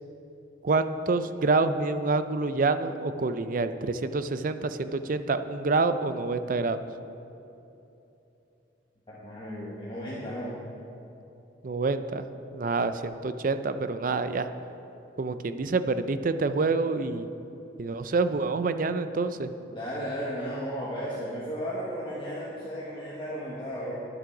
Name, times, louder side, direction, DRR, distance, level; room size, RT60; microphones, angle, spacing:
voice 1, 0.6-6.8 11.6-12.3 12.5-14.5 15.2-17.3 17.8-19.5, right 3 dB, 45° right, 11 dB, 0.4 m, -27 dB
voice 2, 9.1-10.5 19.7-24.1, equal, 25° left, -7 dB, 1.3 m, -34 dB
11.0 x 7.7 x 6.0 m, 2.9 s
head